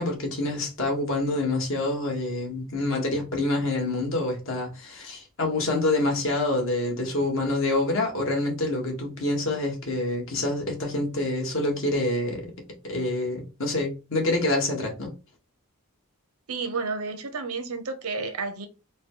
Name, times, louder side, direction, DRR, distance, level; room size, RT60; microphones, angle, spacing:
voice 1, 0.0-12.5 12.8-15.1, left 2 dB, 60° left, 1.6 m, -27 dB
voice 2, 16.5-18.7, right 4 dB, 85° right, 0.8 m, -31 dB
4.1 x 2.3 x 4.5 m
head